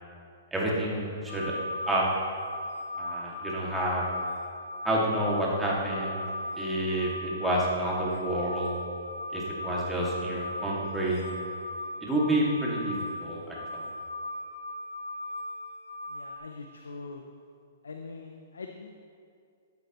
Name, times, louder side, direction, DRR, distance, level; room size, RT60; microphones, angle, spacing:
voice 1, 0.5-1.5 1.9-2.1 3.0-4.1 4.8-6.2 6.6-8.7 9.3-11.2 12.0-13.0 13.2-13.9, right 1 dB, 10° right, -5 dB, 2.1 m, -29 dB
sound 1, 1.3-16.4, left 1 dB, 50° left, 1.5 m, -37 dB
voice 2, 16.1-17.2 17.8-18.9, left 4 dB, 90° left, 5 dB, 0.6 m, -43 dB
12.5 x 7.9 x 3.0 m, 2.3 s
hypercardioid pair, 130°, 0 cm